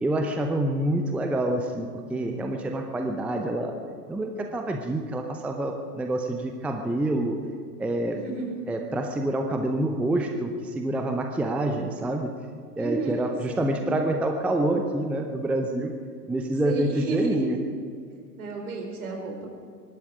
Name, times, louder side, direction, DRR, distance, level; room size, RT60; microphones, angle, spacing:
voice 1, 0.0-3.8 4.1-7.4 7.8-8.2 8.7-12.3 12.8-15.9 16.3-17.6, right 1 dB, 5° right, 4 dB, 0.6 m, -27 dB
voice 2, 8.1-8.6 12.8-13.8 16.6-17.5 18.4-19.5, right 3 dB, 60° right, 1 dB, 4.5 m, -32 dB
24.0 x 12.0 x 5.0 m, 2.2 s
figure-of-eight pair, 100°, 49 cm